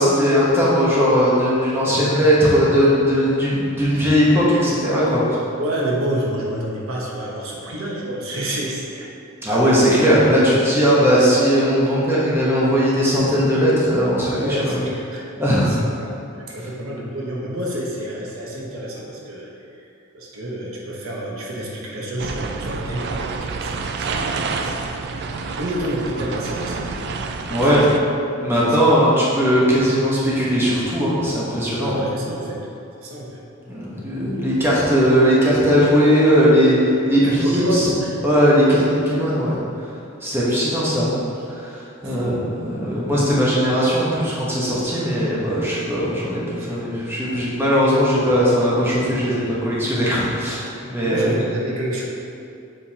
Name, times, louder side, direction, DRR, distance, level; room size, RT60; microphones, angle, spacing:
voice 1, 0.0-5.2 9.4-14.8 15.4-15.7 27.5-27.9 28.4-32.0 33.6-36.8 37.1-37.8 38.2-39.6 40.2-41.1 41.5-51.3, equal, 10° right, -7 dB, 1.1 m, -18 dB
voice 2, 1.8-2.1 5.6-9.1 9.7-9.8 14.4-15.2 15.5-16.2 16.5-19.5 19.8-19.9 20.1-25.2 25.6-27.1 27.5-27.8 28.4-28.9 31.8-32.6 33.0-33.4 37.2-38.2 42.0-42.5 46.5-46.9 51.0-52.0, right 1 dB, 75° right, -3 dB, 1.0 m, -28 dB
sound 1, 22.2-28.0, right 4 dB, 50° right, 0.3 m, -28 dB
7.1 x 5.1 x 2.9 m, 2.6 s
head